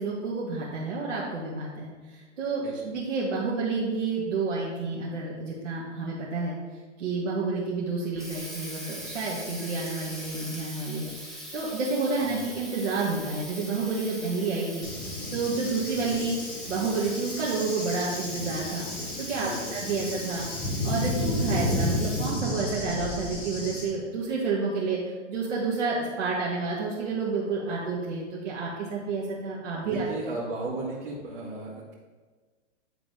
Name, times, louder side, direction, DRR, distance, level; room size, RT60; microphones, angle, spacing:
voice 1, 0.0-6.6 7.0-14.9 15.3-16.4 16.7-18.9 19.2-20.5 20.8-25.0 25.3-30.0, right 4 dB, 80° right, -6 dB, 1.8 m, -30 dB
Water tap faucet, 7.9-22.6, equal, ahead, 1.1 m, -42 dB
Cricket / Thunder, 14.8-23.8, left 1 dB, 20° left, 2.5 m, -32 dB
voice 2, 19.3-19.8 29.7-31.9, right 2 dB, 45° right, -6 dB, 2.1 m, -35 dB
9.6 x 3.9 x 4.9 m, 1.4 s
hypercardioid pair, 150°, 37 cm